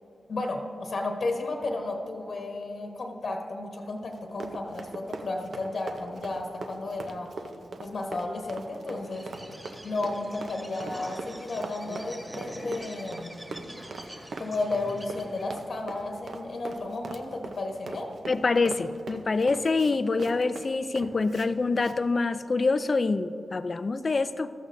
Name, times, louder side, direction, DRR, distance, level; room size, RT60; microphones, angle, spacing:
voice 1, 0.3-7.3 7.8-9.3 9.8-13.3 14.4-18.1, left 2 dB, 60° left, 2 dB, 1.2 m, -33 dB
Run, 4.1-21.5 21.8-22.0, right 3 dB, 70° right, 0.7 m, -41 dB
Bird, 9.0-15.6, equal, 15° right, 1.9 m, -44 dB
voice 2, 18.3-24.5, left 3 dB, 40° left, 12 dB, 0.4 m, -26 dB
14.5 x 13.5 x 2.7 m, 2.7 s
wide cardioid pair, 100°, 0 cm